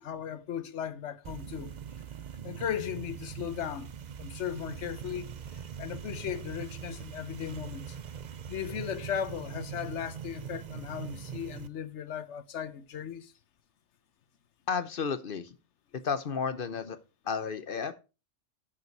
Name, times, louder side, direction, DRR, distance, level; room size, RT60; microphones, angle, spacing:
voice 1, 0.0-1.8 2.4-3.9 4.2-8.0 8.5-13.3, left 9 dB, 70° left, 1.1 m, -37 dB
sound 1, 1.2-11.7, right 8 dB, 50° right, 0.6 m, -42 dB
voice 2, 14.7-15.6 16.0-17.0 17.2-17.9, left 6 dB, 50° left, 1.1 m, -32 dB
9.3 x 6.9 x 4.6 m
omnidirectional pair, 1.2 m